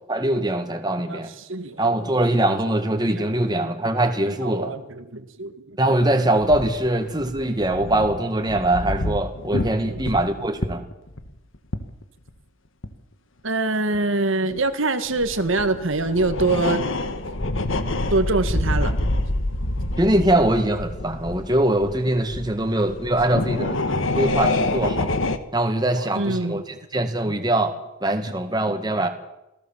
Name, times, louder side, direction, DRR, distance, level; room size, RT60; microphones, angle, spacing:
voice 1, 0.1-1.3 1.8-4.7 5.8-10.8 20.0-23.8 24.1-25.1 25.5-27.7 28.0-29.1, right 1 dB, 20° right, 6 dB, 2.0 m, -22 dB
voice 2, 1.1-1.8 3.6-3.7 4.4-5.8 9.9-10.0 13.4-16.8 18.1-18.9 22.6-22.7 23.8-24.1 25.9-26.6 27.3-27.4, right 2 dB, 70° right, 8 dB, 1.9 m, -24 dB
sound 1, 6.4-12.0 12.3-12.4 12.8-12.9 13.9-14.0 14.5-14.6 15.1-25.4, left 2 dB, 70° left, 1.7 m, -27 dB
26.5 x 17.5 x 7.5 m, 0.91 s
head